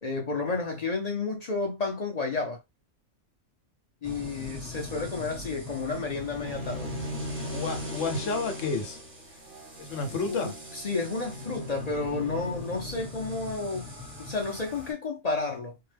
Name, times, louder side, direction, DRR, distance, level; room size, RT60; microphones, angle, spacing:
voice 1, 0.0-2.6 4.0-6.9 10.3-10.4 10.7-13.9 14.2-15.8, left 3 dB, 45° left, 0.5 m, -31 dB
sound 1, 4.0-14.9, left 1 dB, 10° right, 1.0 m, -42 dB
Bowed string instrument, 6.4-13.5, equal, 50° right, 0.7 m, -40 dB
voice 2, 7.5-9.0 9.8-10.5, left 4 dB, 75° left, 1.1 m, -30 dB
2.7 x 2.2 x 3.3 m
omnidirectional pair, 1.3 m